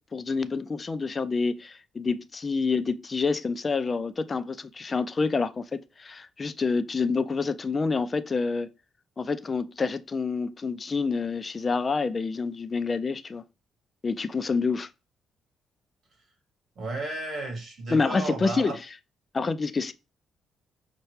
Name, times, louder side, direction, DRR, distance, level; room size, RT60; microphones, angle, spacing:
voice 1, 0.1-8.7 9.2-13.4 14.0-14.9 17.9-18.7 19.3-19.9, left 4 dB, 35° left, 0.4 m, -27 dB
voice 2, 16.8-18.8, right 2 dB, 55° right, 2.2 m, -33 dB
5.5 x 2.2 x 3.2 m
cardioid pair, 90°, 0 cm